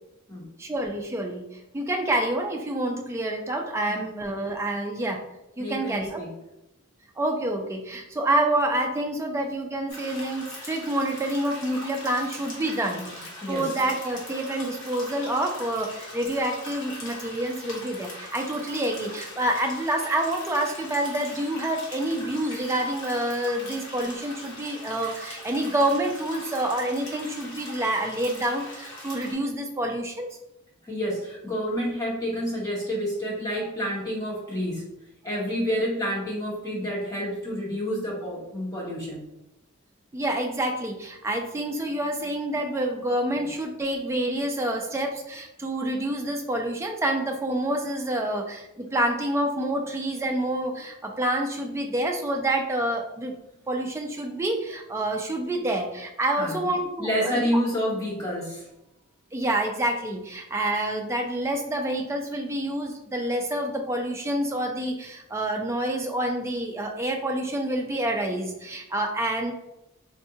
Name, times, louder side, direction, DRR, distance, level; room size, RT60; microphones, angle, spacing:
voice 1, 0.6-1.5 1.7-5.2 5.6-6.2 7.2-30.3 40.1-53.4 53.7-57.5 59.3-69.5, right 1 dB, 10° right, 2 dB, 0.3 m, -28 dB
voice 2, 5.6-6.3 12.9-13.1 13.4-13.7 30.8-34.9 35.2-39.3 56.4-56.7 57.0-58.7, equal, 15° left, -6 dB, 0.9 m, -29 dB
sound 1, 9.9-29.3, left 1 dB, 55° left, 0.9 m, -41 dB
3.6 x 2.2 x 2.7 m, 0.89 s
head